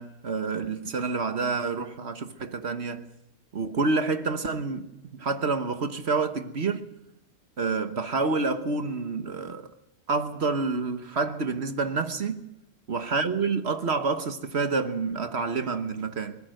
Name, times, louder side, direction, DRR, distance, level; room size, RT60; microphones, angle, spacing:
voice 1, 0.0-3.0 3.5-6.9 7.6-9.7 10.1-12.4 12.9-16.4, right 4 dB, 55° right, 1.4 m, -28 dB
23.0 x 20.0 x 6.5 m
omnidirectional pair, 1.3 m